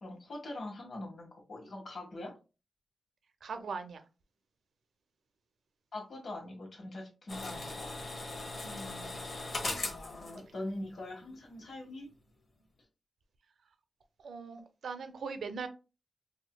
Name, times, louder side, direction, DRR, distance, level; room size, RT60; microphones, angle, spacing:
voice 1, 0.0-2.3 5.9-8.0 9.8-12.1, left 1 dB, 65° left, 1.5 m, -43 dB
voice 2, 3.4-4.0 8.6-9.2 14.2-15.7, right 5 dB, 80° right, 0.5 m, -41 dB
sound 1, 7.3-11.3 11.6-11.7, left 2 dB, 50° left, 0.9 m, -40 dB
4.4 x 2.7 x 2.2 m
wide cardioid pair, 135°, 0 cm